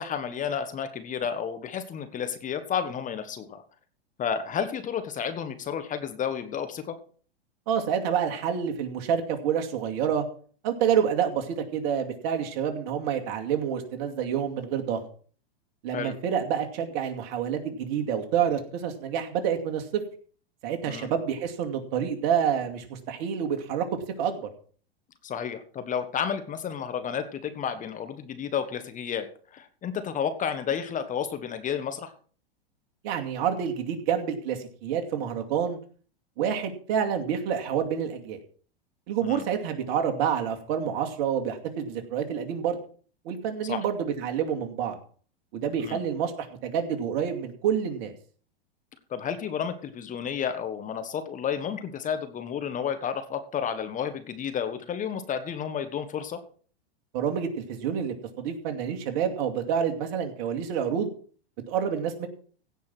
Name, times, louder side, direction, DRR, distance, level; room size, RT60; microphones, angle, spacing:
voice 1, 0.0-3.6 4.2-6.9 15.9-16.1 20.8-21.1 25.2-29.3 29.5-32.1 39.2-39.4 43.6-43.8 45.8-46.0 49.1-56.4, left 7 dB, 25° left, 9 dB, 1.5 m, -31 dB
voice 2, 7.7-10.2 10.6-15.0 15.8-20.0 20.6-23.8 24.2-24.5 33.0-35.8 36.4-38.4 39.1-42.8 43.2-45.0 45.5-48.1 57.1-61.1 61.7-62.3, right 8 dB, 50° right, 4 dB, 2.5 m, -28 dB
16.5 x 5.6 x 6.1 m, 0.43 s
hypercardioid pair, 110°, 30 cm